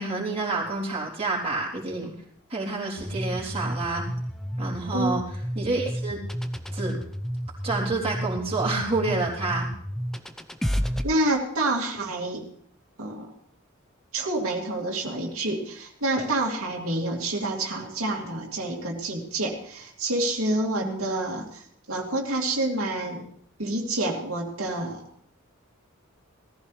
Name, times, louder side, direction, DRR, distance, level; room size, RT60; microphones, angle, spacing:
voice 1, 0.0-2.1 2.5-4.0 4.6-5.2 5.6-6.2 6.7-7.0 7.6-9.7 20.7-21.1, right 3 dB, 30° right, -5 dB, 3.5 m, -28 dB
sound 1, 3.0-11.0, equal, ahead, 0.7 m, -31 dB
voice 2, 11.0-12.4 13.0-13.3 14.1-21.6 21.9-23.3 23.6-25.0, right 2 dB, 90° right, -1 dB, 2.7 m, -28 dB
18.5 x 14.5 x 3.3 m, 0.62 s
head